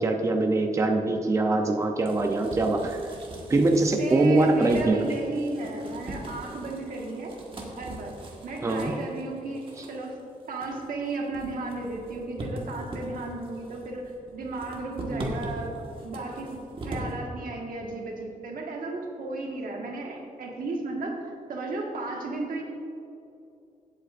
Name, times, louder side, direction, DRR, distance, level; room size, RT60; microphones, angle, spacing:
voice 1, 0.0-3.0 3.5-5.1 8.6-8.9 15.1-15.3, right 2 dB, 20° right, 3 dB, 0.6 m, -23 dB
sound 1, 1.7-17.1, right 1 dB, 40° right, 1.5 m, -41 dB
voice 2, 4.0-7.3 7.8-8.2 8.4-10.2 10.5-22.6, right 2 dB, 85° right, 0 dB, 1.6 m, -34 dB
16.5 x 8.3 x 2.5 m, 2.7 s
wide cardioid pair, 165°, 14 cm